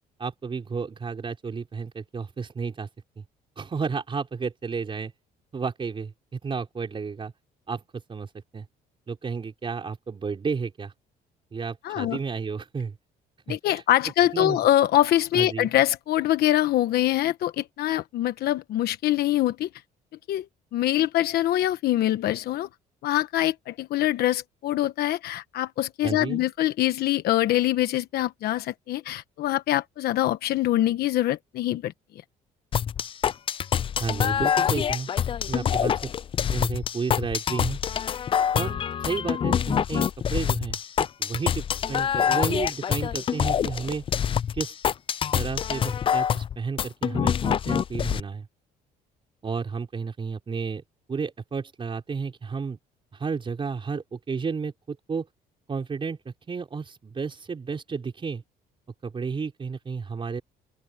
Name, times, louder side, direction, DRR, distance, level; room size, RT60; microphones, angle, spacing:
voice 1, 0.2-2.9 3.2-3.3 3.6-5.1 5.5-7.3 7.7-7.8 8.1-8.7 9.1-10.9 11.5-12.9 13.5-13.8 14.3-14.6 15.3-15.7 26.0-26.5 34.0-35.1 35.5-36.1 36.5-37.8 38.5-44.0 44.5-44.7 45.3-48.5 49.4-50.8 51.1-52.8 53.1-55.3 55.7-58.4 59.0-60.4, right 5 dB, 30° right, 4.9 m, -32 dB
voice 2, 11.8-12.2 13.5-19.7 20.3-20.4 20.7-22.7 23.0-31.9, left 13 dB, 70° left, 1.1 m, -24 dB
sound 1, 32.7-48.2, left 8 dB, 30° left, 0.3 m, -26 dB
open air
cardioid pair, 110°, 17 cm